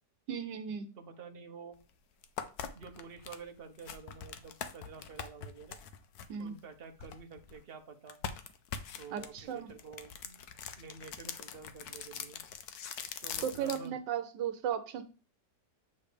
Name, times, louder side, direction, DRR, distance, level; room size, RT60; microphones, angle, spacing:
voice 1, 0.3-0.9 6.3-6.6 9.1-9.7 13.4-15.0, right 8 dB, 85° right, 8 dB, 1.3 m, -36 dB
voice 2, 1.0-1.8 2.7-5.8 6.4-8.2 9.0-10.4 10.8-12.4 13.2-13.9, right 5 dB, 40° right, 6 dB, 1.0 m, -49 dB
sound 1, 1.7-1.8 2.2-7.6 8.1-13.9, left 8 dB, 70° left, 1.2 m, -43 dB
8.3 x 3.2 x 5.0 m, 0.35 s
omnidirectional pair, 1.8 m